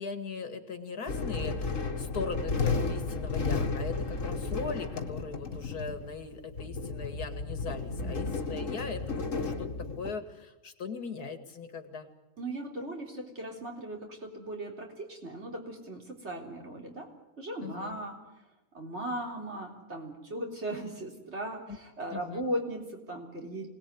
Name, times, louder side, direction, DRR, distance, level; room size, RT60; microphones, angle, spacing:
voice 1, 0.0-9.7 10.0-12.1 17.6-18.0 21.7-21.8 22.1-22.4, left 4 dB, 80° left, 8 dB, 2.6 m, -39 dB
sound 1, 1.1-10.1, left 4 dB, 55° left, 2.2 m, -33 dB
voice 2, 7.9-8.3 12.4-17.1 17.4-18.2 18.7-23.7, right 1 dB, 45° right, 1 dB, 4.2 m, -38 dB
26.0 x 19.0 x 9.5 m, 1.1 s
omnidirectional pair, 1.6 m